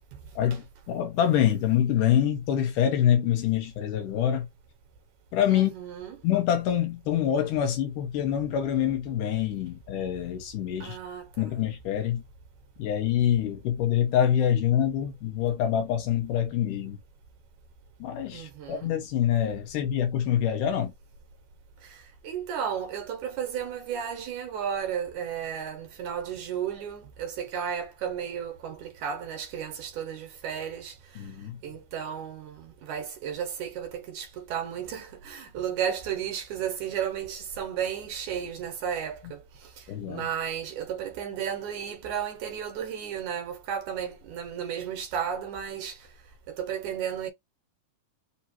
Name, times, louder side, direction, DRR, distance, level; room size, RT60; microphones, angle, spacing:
voice 1, 0.4-4.5 5.3-5.7 6.2-11.0 11.4-12.2 12.8-17.0 18.0-20.9 31.2-31.6 39.9-40.3, left 10 dB, 75° left, 2.5 m, -25 dB
voice 2, 5.5-6.2 10.8-11.5 18.3-18.9 21.8-31.3 31.6-46.1 46.5-47.3, right 8 dB, 70° right, 2.0 m, -34 dB
5.2 x 2.8 x 2.9 m
omnidirectional pair, 4.0 m